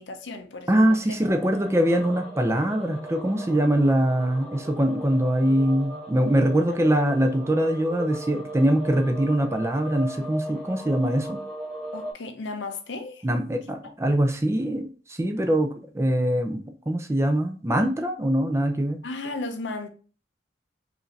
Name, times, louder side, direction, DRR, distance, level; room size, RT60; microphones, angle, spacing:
voice 1, 0.0-1.0 11.9-13.3 19.0-19.9, left 3 dB, 80° left, 0.7 m, -34 dB
voice 2, 0.7-11.4 13.2-16.6 16.9-19.0, right 1 dB, 15° right, 0.5 m, -23 dB
sound 1, 1.2-12.1, right 1 dB, 5° left, 1.8 m, -38 dB
4.8 x 2.6 x 3.2 m
head